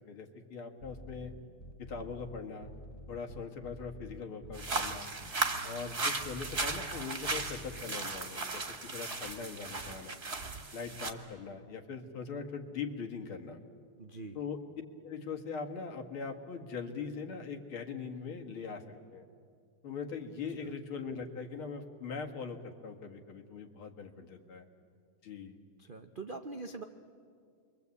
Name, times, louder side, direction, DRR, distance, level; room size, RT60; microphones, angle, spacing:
voice 1, 0.0-1.3 1.8-2.7 3.1-5.1 5.6-10.2 10.7-13.6 14.3-14.6 15.0-19.3 19.8-24.6 25.2-25.6, left 5 dB, 75° left, 3 dB, 2.6 m, -41 dB
sound 1, 0.8-7.8, left 1 dB, 15° left, 1.3 m, -49 dB
sound 2, 4.5-11.1, right 3 dB, 30° right, 1.8 m, -36 dB
voice 2, 14.0-14.4 20.6-20.7 25.8-26.8, right 3 dB, 80° right, 5 dB, 0.4 m, -43 dB
29.5 x 23.5 x 8.4 m, 2.2 s
omnidirectional pair, 2.4 m